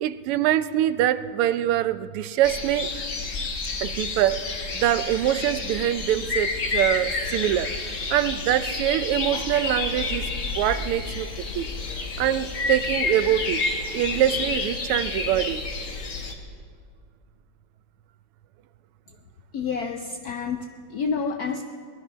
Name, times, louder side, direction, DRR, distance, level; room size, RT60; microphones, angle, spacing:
voice 1, 0.0-2.9 3.8-4.4 4.7-7.7 8.1-10.3 10.6-11.7 12.2-13.6 13.9-15.6, right 12 dB, 90° right, 14 dB, 1.6 m, -24 dB
sound 1, 2.4-16.3, left 3 dB, 40° left, 1.4 m, -29 dB
voice 2, 19.5-21.6, left 5 dB, 75° left, 6 dB, 0.8 m, -29 dB
19.0 x 13.0 x 5.6 m, 2.2 s
omnidirectional pair, 2.4 m